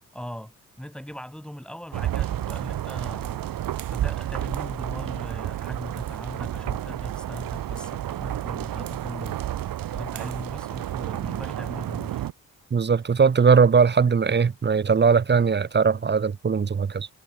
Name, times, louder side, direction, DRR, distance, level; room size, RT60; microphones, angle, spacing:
voice 1, 0.1-3.6 3.9-9.4 9.9-12.2, equal, 5° left, 3.3 m, -39 dB
sound 1, 1.9-12.3, right 12 dB, 90° right, 1.3 m, -31 dB
voice 2, 12.7-17.1, right 5 dB, 35° right, 0.8 m, -20 dB
cardioid pair, 85°, 33 cm